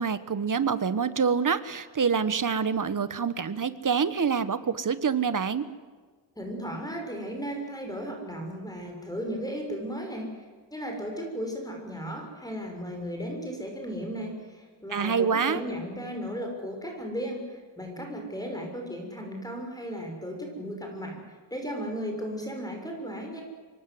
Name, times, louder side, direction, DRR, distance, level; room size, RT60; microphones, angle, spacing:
voice 1, 0.0-5.6 14.9-15.6, right 6 dB, 45° right, 13 dB, 1.4 m, -26 dB
voice 2, 6.4-21.2 21.5-23.4, equal, 10° left, 2 dB, 6.3 m, -35 dB
26.0 x 23.5 x 8.0 m, 1.5 s
wide cardioid pair, 125°, 45 cm